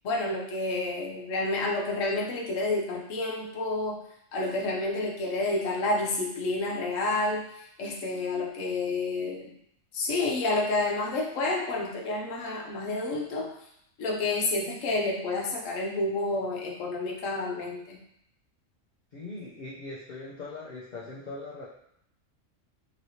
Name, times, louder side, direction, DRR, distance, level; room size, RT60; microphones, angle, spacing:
voice 1, 0.0-4.0 4.3-7.4 7.8-9.5 9.9-13.5 14.0-18.0, left 2 dB, 80° left, -2 dB, 1.1 m, -29 dB
voice 2, 19.1-21.6, left 2 dB, 50° left, -6 dB, 0.6 m, -40 dB
3.0 x 3.0 x 2.7 m, 0.74 s
omnidirectional pair, 1.3 m